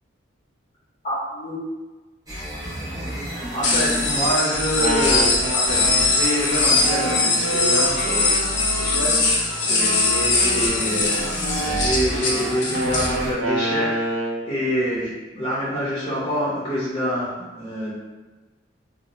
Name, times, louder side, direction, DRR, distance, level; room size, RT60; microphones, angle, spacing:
voice 1, 1.0-1.6 3.5-8.5 8.7-11.1 11.6-14.0 14.4-17.3 17.6-17.9, equal, 25° left, -10 dB, 0.7 m, -26 dB
sound 1, 2.3-13.3, equal, 20° right, 0.8 m, -32 dB
sound 2, 3.6-13.1, left 3 dB, 65° left, 0.6 m, -22 dB
Wind instrument woodwind instrument, 4.6-9.3 9.8-14.5, right 2 dB, 75° right, 0.5 m, -28 dB
2.7 x 2.0 x 2.9 m, 1.2 s
head